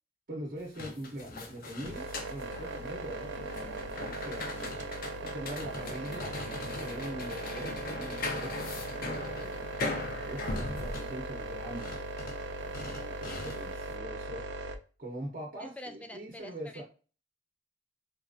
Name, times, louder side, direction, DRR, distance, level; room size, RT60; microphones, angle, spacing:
voice 1, 0.3-4.8 5.2-8.5 8.9-9.6 10.2-12.1 12.6-14.4 15.0-16.8, right 1 dB, 50° right, -1 dB, 0.8 m, -43 dB
sound 1, 0.6-13.9, left 3 dB, 50° left, 0.6 m, -40 dB
sound 2, 1.8-14.8, right 3 dB, 65° right, 0.4 m, -39 dB
voice 2, 15.6-16.8, left 1 dB, 10° left, 6 dB, 0.3 m, -46 dB
4.3 x 2.5 x 2.4 m, 0.36 s
head